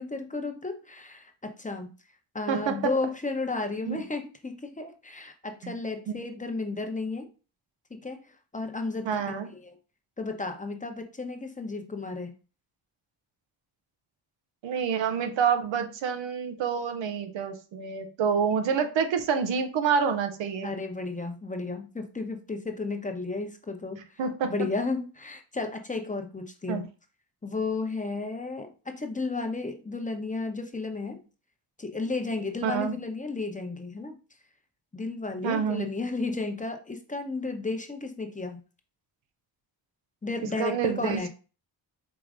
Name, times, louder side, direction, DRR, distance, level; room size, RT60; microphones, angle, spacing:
voice 1, 0.0-1.9 2.3-7.3 7.9-9.4 9.6-9.8 10.2-12.4 20.6-24.0 24.4-26.9 27.4-31.2 31.8-34.2 34.9-38.6 40.2-41.3, left 3 dB, 15° left, 0.8 m, -33 dB
voice 2, 2.5-3.0 3.9-4.0 5.6-5.7 6.1-6.2 9.1-9.5 14.6-20.7 24.2-24.5 26.7-26.8 32.6-32.9 35.4-35.9 40.6-41.3, right 6 dB, 85° right, 0.7 m, -27 dB
4.8 x 3.0 x 2.5 m
cardioid pair, 65°, 44 cm